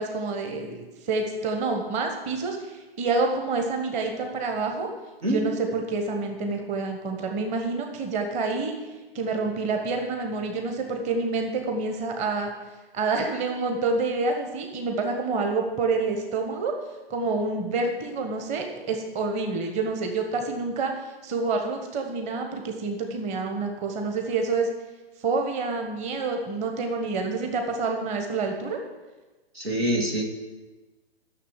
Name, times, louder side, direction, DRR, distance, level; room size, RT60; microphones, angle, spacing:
voice 1, 0.0-4.9 5.3-8.7 9.1-12.5 12.9-16.7 17.1-24.7 25.2-28.8, right 3 dB, 25° right, 3 dB, 1.2 m, -28 dB
voice 2, 5.2-5.5 29.6-30.2, right 1 dB, 90° right, 1 dB, 2.2 m, -25 dB
10.0 x 6.8 x 7.2 m, 1.2 s
figure-of-eight pair, 120°, 30 cm